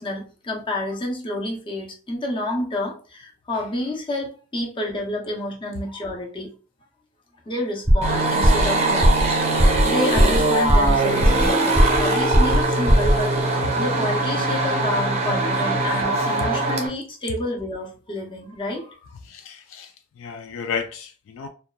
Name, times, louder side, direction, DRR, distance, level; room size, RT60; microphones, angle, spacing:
voice 1, 0.0-6.5 7.5-19.2, left 1 dB, 25° left, 0.6 m, -29 dB
sound 1, 7.9-8.2 8.4-8.7 9.0-9.3 9.6-9.9 10.2-10.4 10.7-11.5 11.8-12.1 12.3-12.6 12.9-13.2, equal, ahead, 0.9 m, -16 dB
sound 2, 8.0-16.9, right 2 dB, 35° right, 0.5 m, -22 dB
voice 2, 19.2-21.5, left 6 dB, 70° left, 0.3 m, -33 dB
2.8 x 2.3 x 2.2 m
head